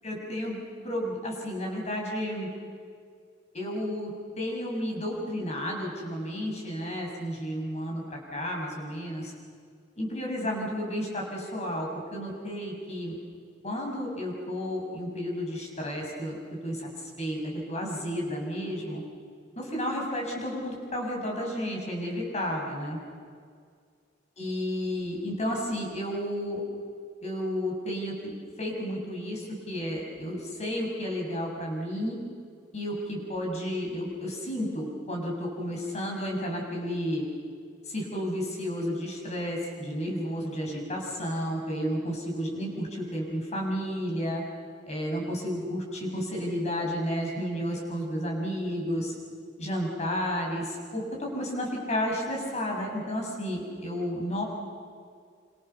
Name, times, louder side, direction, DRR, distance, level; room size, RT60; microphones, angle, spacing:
voice 1, 0.0-2.5 3.5-9.3 9.9-13.1 13.6-16.4 16.6-19.0 19.6-23.0 24.4-26.6 27.2-32.2 32.7-37.2 37.9-44.4 44.8-49.1 49.6-54.4, equal, 40° left, 0 dB, 6.6 m, -32 dB
27.0 x 27.0 x 6.9 m, 2.1 s
head